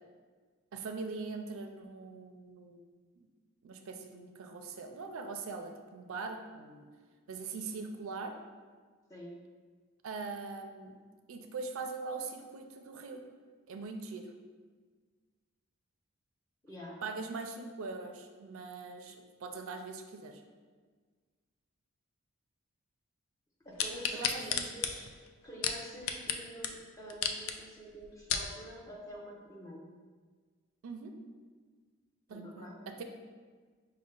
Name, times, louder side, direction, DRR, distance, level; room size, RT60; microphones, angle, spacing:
voice 1, 0.7-2.8 3.6-6.9 7.3-8.3 10.0-10.9 11.3-13.2 13.7-14.3 17.0-20.4 24.2-24.6 30.8-31.1 32.3-32.7 33.0-33.1, right 4 dB, 75° right, 5 dB, 0.4 m, -41 dB
voice 2, 16.6-17.0 23.6-25.1 25.4-29.8 32.3-32.8, equal, 15° left, -4 dB, 0.7 m, -47 dB
sound 1, 23.8-26.4 26.6-26.7 27.1-27.5 28.0-28.5 29.1-29.2, left 7 dB, 70° left, 0.3 m, -32 dB
5.2 x 2.1 x 3.7 m, 1.5 s
head